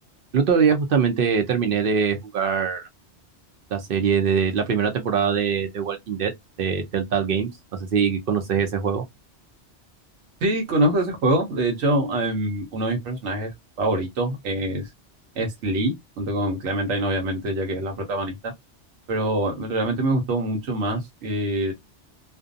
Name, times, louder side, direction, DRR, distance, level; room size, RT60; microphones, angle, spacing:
voice 1, 0.3-2.8 3.7-6.3 6.6-7.5 7.9-9.0, right 6 dB, 60° right, 0.7 m, -22 dB
voice 2, 10.4-13.5 13.8-14.9 15.4-18.5 19.1-21.7, right 1 dB, 85° right, 1.1 m, -24 dB
2.5 x 2.2 x 2.4 m
omnidirectional pair, 1.2 m